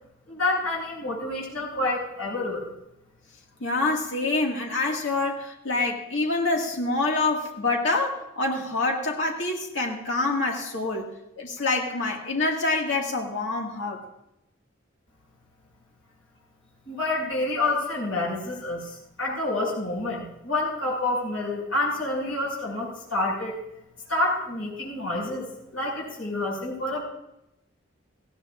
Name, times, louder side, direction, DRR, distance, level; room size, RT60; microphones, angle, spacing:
voice 1, 0.3-2.7 16.8-23.6 24.1-25.5 25.7-27.0, left 2 dB, 90° left, -4 dB, 6.0 m, -28 dB
voice 2, 3.6-11.1 11.4-14.0, left 3 dB, 70° left, 0 dB, 2.1 m, -26 dB
18.5 x 16.0 x 2.6 m, 0.88 s
head